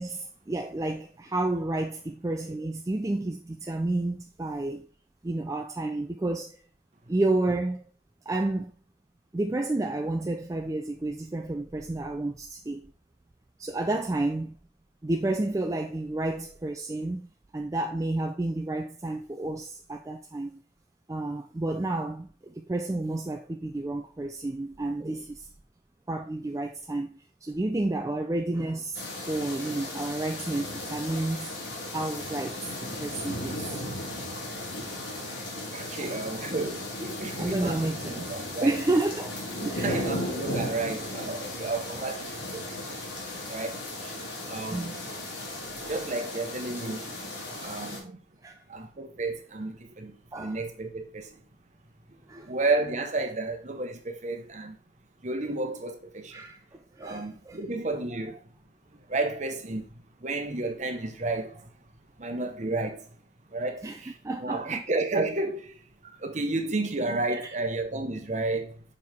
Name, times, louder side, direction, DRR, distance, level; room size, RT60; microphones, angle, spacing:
voice 1, 0.0-4.9 5.2-6.6 7.1-7.8 8.3-8.7 9.3-12.9 13.6-14.5 15.0-17.2 17.5-20.6 21.1-25.5 26.1-31.5 31.9-32.7 33.0-34.0 36.0-36.2 37.4-38.3 38.6-39.3 39.6-40.0 44.7-45.0 48.4-48.6 50.3-50.6 52.3-52.5 56.3-56.6 57.0-57.6 63.8-64.0 64.2-64.8 67.3-67.5, right 2 dB, 15° right, 0.3 m, -30 dB
sound 1, 28.9-48.0, left 1 dB, 75° left, 2.0 m, -36 dB
voice 2, 35.7-37.8 38.1-38.8 39.6-42.8 43.5-44.2 44.4-45.0 45.9-48.2 48.7-51.4 52.4-54.8 55.2-56.4 57.0-58.4 59.1-61.7 62.2-63.1 63.5-65.8 66.2-69.0, right 2 dB, 40° right, 0.9 m, -32 dB
6.2 x 4.7 x 3.5 m
head